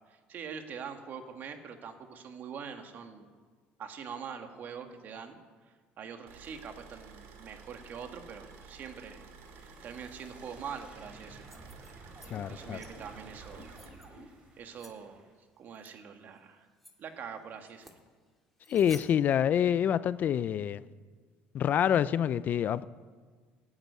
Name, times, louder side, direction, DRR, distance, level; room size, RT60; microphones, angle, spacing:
voice 1, 0.1-3.3 3.8-9.3 9.6-11.5 11.9-12.0 12.4-13.7 14.1-14.3 14.6-15.2 15.6-16.7 17.0-17.9, right 6 dB, 45° right, 1.8 m, -44 dB
sound 1, 6.3-13.9, right 5 dB, 70° right, 2.5 m, -52 dB
sound 2, 8.3-15.3, right 2 dB, 30° right, 3.9 m, -53 dB
sound 3, 11.4-12.3 12.6-12.9 13.5-14.1 14.7-14.9 15.7-15.9 16.4-16.5 16.8-16.9 17.6-18.0 18.6-19.1, left 1 dB, ahead, 2.1 m, -54 dB
voice 2, 12.3-12.8 18.7-20.8 21.5-22.8, left 9 dB, 45° left, 0.4 m, -27 dB
15.5 x 9.7 x 9.6 m
cardioid pair, 125°, 4 cm